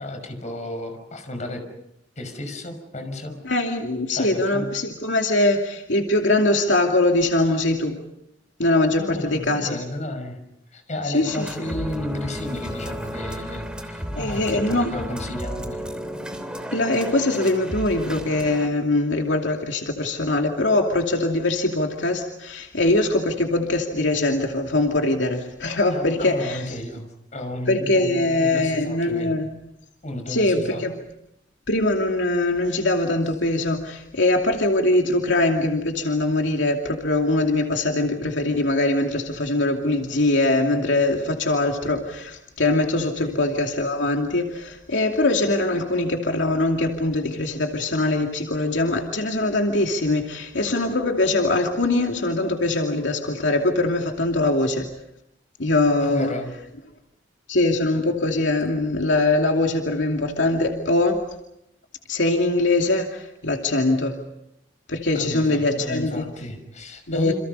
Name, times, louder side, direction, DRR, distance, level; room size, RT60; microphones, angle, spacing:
voice 1, 0.0-1.6 2.2-3.4 4.1-4.7 9.0-10.4 10.7-15.9 25.9-29.4 30.0-30.8 43.2-43.3 56.0-56.5 65.1-67.3, left 1 dB, 40° left, 6 dB, 5.9 m, -33 dB
voice 2, 3.4-8.0 8.6-9.8 11.0-11.5 14.2-14.9 16.7-26.7 27.7-29.5 30.3-31.0 31.7-54.9 55.6-56.3 57.5-61.3 62.1-64.2 64.9-66.3 67.1-67.3, left 2 dB, 85° left, 2 dB, 2.6 m, -22 dB
sound 1, 11.2-18.7, equal, 5° right, 3.1 m, -33 dB
29.0 x 28.0 x 5.5 m, 0.82 s
head